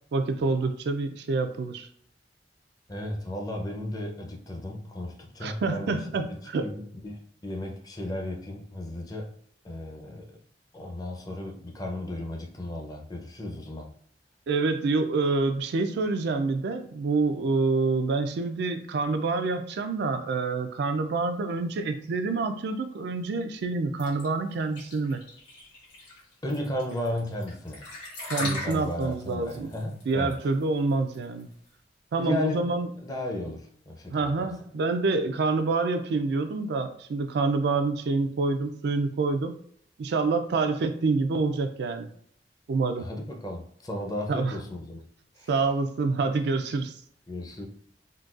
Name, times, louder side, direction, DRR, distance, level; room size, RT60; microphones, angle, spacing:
voice 1, 0.1-1.9 5.4-6.7 14.5-25.2 28.3-29.7 30.1-31.5 32.1-32.9 34.1-39.5 40.0-42.1 42.7-43.1 44.3-44.6 45.5-46.9, right 3 dB, 65° right, 7 dB, 0.3 m, -27 dB
voice 2, 2.9-9.3 9.6-10.3 10.7-13.9 26.4-27.9 28.4-30.4 32.2-32.7 33.0-34.5 43.0-45.1 45.4-45.5 47.3-47.7, left 1 dB, 20° left, 2 dB, 0.5 m, -35 dB
sound 1, 24.0-31.7, left 2 dB, 90° left, 1.5 m, -39 dB
3.9 x 2.2 x 2.4 m, 0.63 s
head